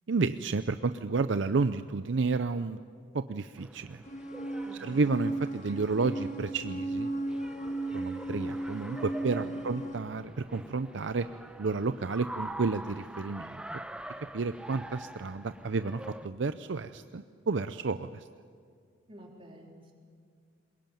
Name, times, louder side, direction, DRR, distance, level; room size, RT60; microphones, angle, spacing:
voice 1, 0.1-2.8 3.1-4.0 4.8-7.1 7.9-11.3 11.6-13.5 13.7-13.8 14.3-18.3, right 4 dB, 65° right, 11 dB, 0.5 m, -31 dB
sound 1, 3.6-16.3, right 1 dB, 5° right, 0.7 m, -45 dB
sound 2, 4.1-10.0, right 1 dB, 35° left, 1.5 m, -35 dB
voice 2, 4.6-5.0 9.3-9.7 19.1-19.9, equal, 25° right, 0 dB, 3.7 m, -50 dB
22.5 x 21.5 x 9.1 m, 2.1 s
head